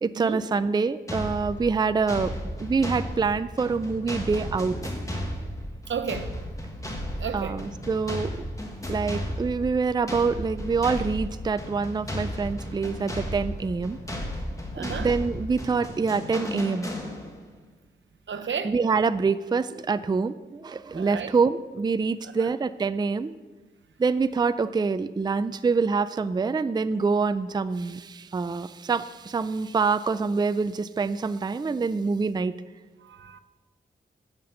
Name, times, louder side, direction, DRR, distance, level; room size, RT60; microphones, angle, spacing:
voice 1, 0.0-2.3 2.6-4.8 7.3-8.3 8.9-14.0 14.8-16.9 18.6-23.3 24.0-32.5, right 4 dB, 20° right, 13 dB, 0.3 m, -26 dB
sound 1, 1.1-17.5, equal, 15° left, 1.6 m, -34 dB
voice 2, 5.9-6.3 7.2-7.6 14.7-15.1 18.3-18.7 20.9-21.3 22.4-22.5 33.0-33.4, right 6 dB, 80° right, 11 dB, 0.7 m, -32 dB
10.5 x 6.0 x 7.7 m, 1.2 s
wide cardioid pair, 100°, 19 cm